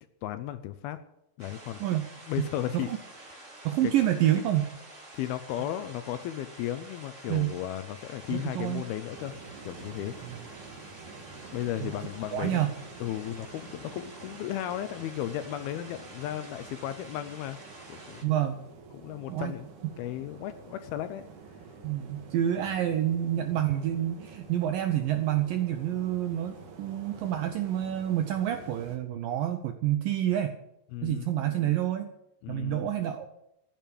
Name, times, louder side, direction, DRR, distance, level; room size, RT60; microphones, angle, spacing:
voice 1, 0.2-1.0 1.4-1.8 2.3-2.9 3.3-3.4 3.8-3.9 5.1-9.4 9.7-10.1 11.5-12.6 13.0-17.6 17.9-18.4 18.9-19.7 20.0-21.3 30.9-31.3 32.4-32.9, left 12 dB, 80° left, 10 dB, 2.3 m, -35 dB
sound 1, 1.4-18.2, right 2 dB, 20° right, 2.1 m, -49 dB
voice 2, 2.4-3.0 3.6-4.7 7.3-7.6 8.3-8.8 10.2-10.4 11.8-11.9 12.3-12.7 18.2-18.6 19.3-19.5 21.8-30.6 31.0-32.1 32.5-33.3, right 12 dB, 80° right, 8 dB, 2.0 m, -28 dB
sound 2, 9.1-29.0, right 4 dB, 55° right, 3.0 m, -49 dB
14.5 x 9.2 x 8.6 m, 0.86 s
omnidirectional pair, 5.0 m